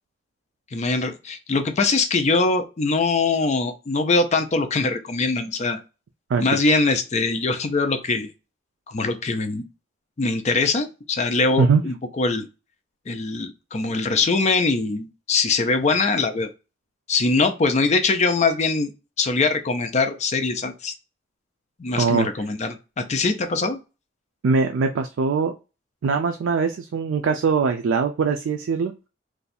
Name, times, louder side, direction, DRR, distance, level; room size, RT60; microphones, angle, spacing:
voice 1, 0.7-5.8 6.4-8.3 8.9-9.6 10.2-12.5 13.1-16.5 17.1-18.9 19.2-20.9 21.8-23.8, left 3 dB, 35° left, 7 dB, 0.5 m, -22 dB
voice 2, 22.0-22.3 24.4-25.5 26.0-28.9, right 5 dB, 80° right, 5 dB, 0.4 m, -21 dB
2.6 x 2.3 x 4.0 m, 0.30 s
head